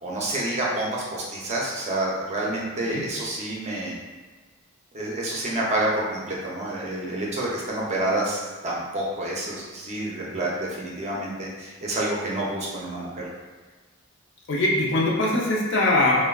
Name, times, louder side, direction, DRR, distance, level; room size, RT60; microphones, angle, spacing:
voice 1, 0.0-4.0 4.9-13.3, right 1 dB, 30° right, -4 dB, 0.5 m, -28 dB
voice 2, 14.5-16.3, left 2 dB, 55° left, -4 dB, 0.5 m, -22 dB
3.4 x 2.1 x 2.3 m, 1.4 s
head